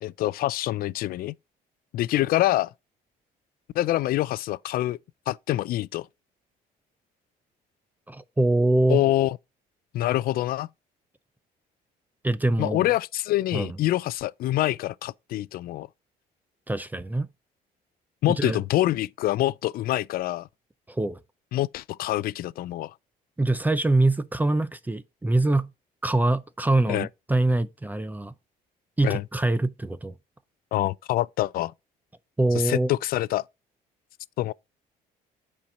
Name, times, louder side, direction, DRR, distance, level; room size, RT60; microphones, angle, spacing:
voice 1, 0.0-1.3 1.9-2.7 3.7-5.0 5.3-6.1 8.9-9.4 9.9-10.7 12.6-15.9 18.2-20.5 21.5-22.9 26.9-27.1 29.0-29.2 30.7-31.7 32.6-33.4 34.4-34.5, left 15 dB, 60° left, 0.4 m, -25 dB
voice 2, 8.1-9.0 12.2-12.9 13.5-13.8 16.7-17.3 18.3-18.6 20.9-21.2 23.4-25.7 26.0-28.3 29.0-30.1 32.4-32.9, right 2 dB, 10° right, 0.5 m, -24 dB
8.6 x 4.4 x 4.9 m
cardioid pair, 110°, 17 cm